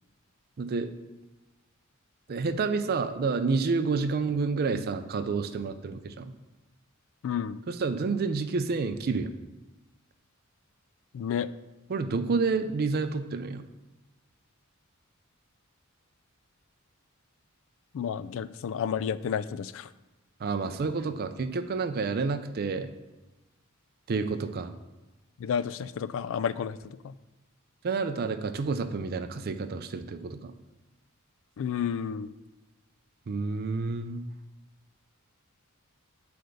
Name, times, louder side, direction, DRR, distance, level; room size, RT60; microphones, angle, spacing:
voice 1, 0.6-0.9 2.3-6.3 7.7-9.3 11.9-13.6 20.4-22.9 24.1-24.8 27.8-30.5 33.3-34.3, right 4 dB, 45° right, 9 dB, 0.4 m, -29 dB
voice 2, 7.2-7.6 11.1-11.5 17.9-19.9 25.4-27.1 31.6-32.3, left 7 dB, 65° left, 16 dB, 0.3 m, -31 dB
7.8 x 3.4 x 6.4 m, 1.1 s
head